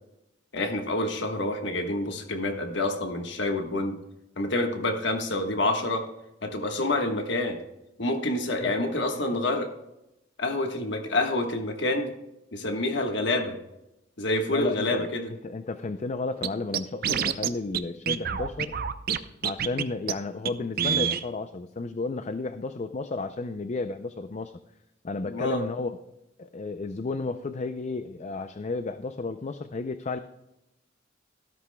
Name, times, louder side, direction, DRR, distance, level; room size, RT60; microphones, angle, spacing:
voice 1, 0.5-3.9 4.4-6.1 6.4-7.6 8.0-9.7 10.4-12.1 12.5-13.6 14.2-15.3 25.2-25.6, left 2 dB, 65° left, 4 dB, 1.4 m, -27 dB
voice 2, 14.5-18.7 19.4-24.5 25.0-26.0 26.4-30.2, left 3 dB, 40° left, 10 dB, 0.4 m, -32 dB
Scratching (performance technique), 16.4-16.5 16.7-17.5 17.7-17.8 18.1-19.2 19.4-19.8 20.1-20.2 20.5-20.6 20.8-21.2, right 8 dB, 55° right, 0.6 m, -26 dB
14.0 x 13.0 x 2.2 m, 0.90 s
head